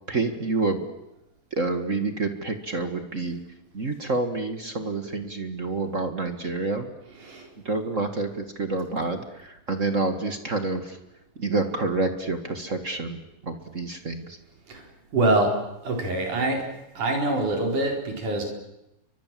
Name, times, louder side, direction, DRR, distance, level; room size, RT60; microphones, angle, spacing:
voice 1, 0.1-0.8 1.5-3.4 3.7-6.9 7.6-11.0 11.3-14.4, right 3 dB, 35° right, 7 dB, 1.2 m, -28 dB
voice 2, 15.1-15.5 15.8-16.7 17.0-18.4, right 2 dB, 60° right, 2 dB, 5.8 m, -24 dB
30.0 x 24.0 x 7.6 m, 0.89 s
omnidirectional pair, 4.0 m